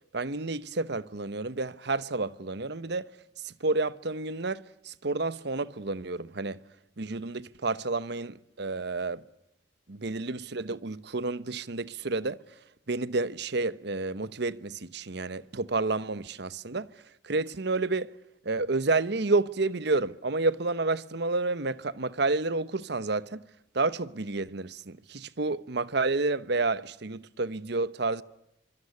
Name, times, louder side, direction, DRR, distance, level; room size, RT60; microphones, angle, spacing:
voice 1, 0.1-3.1 3.4-6.6 7.0-9.2 9.9-12.4 12.9-16.9 17.2-18.1 18.4-23.4 23.7-28.2, right 3 dB, 60° right, 1.0 m, -30 dB
25.0 x 25.0 x 8.3 m
head